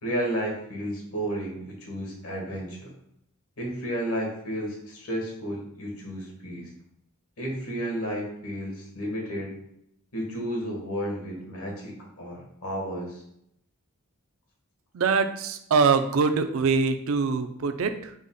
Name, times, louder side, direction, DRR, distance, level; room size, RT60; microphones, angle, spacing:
voice 1, 0.0-2.9 3.6-6.8 7.4-9.6 10.1-13.2, equal, 80° left, -1 dB, 1.3 m, -32 dB
voice 2, 14.9-18.1, right 5 dB, 65° right, 9 dB, 0.4 m, -23 dB
5.0 x 2.1 x 3.7 m, 0.74 s
head